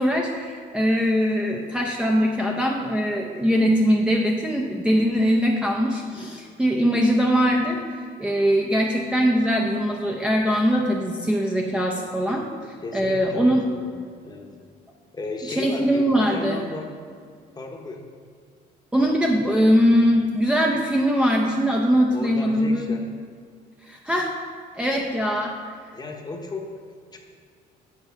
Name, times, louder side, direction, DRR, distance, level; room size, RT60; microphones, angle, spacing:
voice 1, 0.0-7.8 8.2-12.4 12.9-13.7 15.5-16.6 18.9-23.0 23.8-24.3 24.7-25.6, equal, 5° right, -1 dB, 0.6 m, -21 dB
voice 2, 12.8-14.0 14.2-14.5 15.1-17.0 17.6-18.0 22.1-23.0 25.9-27.2, left 3 dB, 25° left, 2 dB, 1.0 m, -35 dB
8.3 x 3.9 x 5.7 m, 2.1 s
cardioid pair, 110°, 17 cm